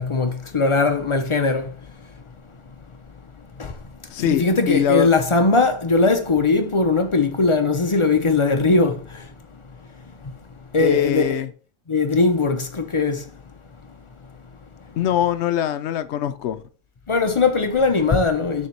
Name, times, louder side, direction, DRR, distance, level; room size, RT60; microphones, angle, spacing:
voice 1, 0.0-1.6 4.3-9.0 10.7-11.4 11.9-13.2 17.1-18.7, left 3 dB, 45° left, 0.4 m, -19 dB
voice 2, 4.1-5.1 10.8-11.5 15.0-16.6, left 10 dB, 65° left, 0.7 m, -22 dB
6.7 x 3.5 x 4.5 m
omnidirectional pair, 1.5 m